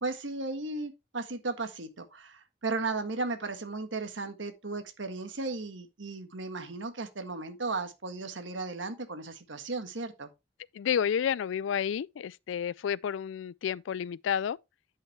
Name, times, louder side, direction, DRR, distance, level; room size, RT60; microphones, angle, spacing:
voice 1, 0.0-10.3, right 3 dB, 70° right, 1.5 m, -35 dB
voice 2, 10.7-14.6, left 8 dB, 75° left, 0.3 m, -30 dB
10.0 x 5.8 x 3.2 m
head